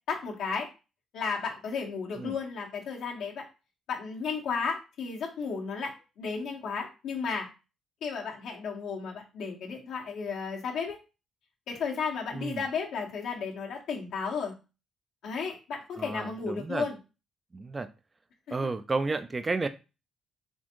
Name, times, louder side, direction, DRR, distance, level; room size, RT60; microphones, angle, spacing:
voice 1, 0.1-0.7 1.1-3.5 3.9-7.5 8.0-11.0 11.7-14.5 15.2-17.0 18.5-18.6, left 5 dB, 80° left, 1.4 m, -33 dB
voice 2, 16.0-16.9 17.5-17.9 18.5-19.7, right 3 dB, 25° right, 0.4 m, -32 dB
4.3 x 3.4 x 3.0 m
cardioid pair, 90°, 0 cm